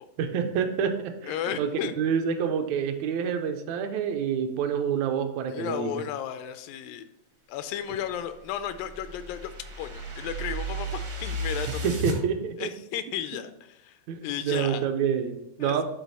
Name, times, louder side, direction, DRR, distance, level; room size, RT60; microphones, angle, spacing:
voice 1, 0.2-1.7 2.0-6.0 11.8-12.7 14.1-15.8, right 7 dB, 75° right, 7 dB, 1.8 m, -28 dB
voice 2, 1.2-2.0 5.5-7.1 7.5-12.0 12.6-14.9 15.6-15.8, left 10 dB, 85° left, 10 dB, 2.3 m, -34 dB
sound 1, 8.1-12.2, right 2 dB, 60° right, 1.1 m, -34 dB
11.5 x 3.9 x 4.1 m, 0.89 s
omnidirectional pair, 3.9 m